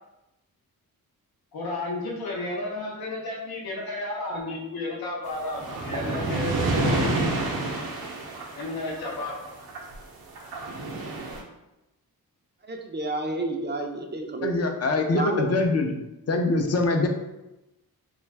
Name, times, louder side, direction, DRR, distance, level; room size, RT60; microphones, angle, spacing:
voice 1, 1.5-7.3 8.5-9.4, left 2 dB, 80° left, -3 dB, 0.7 m, -32 dB
sound 1, 5.3-10.0 10.3-11.4, right 2 dB, 80° right, 0.6 m, -29 dB
voice 2, 12.6-14.6 15.1-15.5, right 2 dB, 30° right, 2 dB, 0.4 m, -30 dB
voice 3, 14.4-15.9 16.3-17.1, left 2 dB, 45° left, 4 dB, 0.5 m, -23 dB
2.5 x 2.3 x 3.2 m, 0.96 s
cardioid pair, 70°, 36 cm